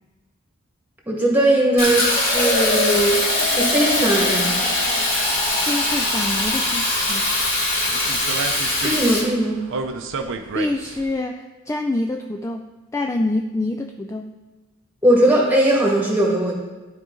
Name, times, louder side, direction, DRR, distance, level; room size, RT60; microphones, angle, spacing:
voice 1, 1.1-3.2 3.6-4.5 8.8-9.7 15.0-16.6, right 1 dB, 10° right, -2 dB, 1.8 m, -19 dB
Fill (with liquid), 1.8-9.2, left 2 dB, 45° left, 2.6 m, -21 dB
voice 2, 5.7-7.3 10.2-10.3 10.5-12.6 12.9-14.3, left 2 dB, 15° left, 4 dB, 0.3 m, -26 dB
sound 1, 5.9-11.1, right 4 dB, 65° right, 0.6 m, -32 dB
12.5 x 4.9 x 3.8 m, 1.2 s
head